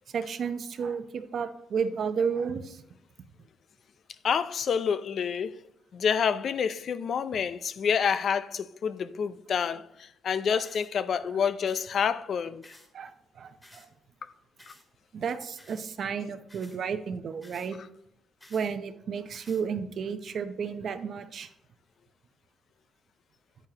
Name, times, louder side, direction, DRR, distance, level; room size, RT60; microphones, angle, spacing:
voice 1, 0.1-2.8 10.5-10.6 12.9-13.1 13.4-13.9 15.1-17.8 18.5-21.5, right 6 dB, 60° right, 0.7 m, -32 dB
voice 2, 4.2-5.6 5.9-12.7, left 7 dB, 55° left, 0.4 m, -28 dB
sound 1, 10.6-10.9 11.6-11.9 12.6-12.9 13.6-13.9 14.6-14.8 15.6-15.8 16.5-16.8 17.4-17.7 18.4-18.7 19.3-19.6, left 1 dB, 10° left, 2.1 m, -54 dB
8.9 x 8.9 x 2.9 m
cardioid pair, 90°, 0 cm